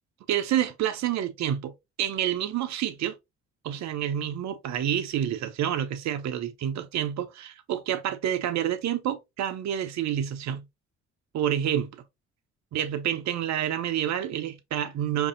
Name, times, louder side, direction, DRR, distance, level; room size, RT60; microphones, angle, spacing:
voice 1, 0.3-1.7 2.0-3.2 3.6-10.7 11.3-11.9 12.7-15.3, right 10 dB, 50° right, 0.6 m, -28 dB
4.7 x 2.6 x 2.5 m
hypercardioid pair, 45°, 36 cm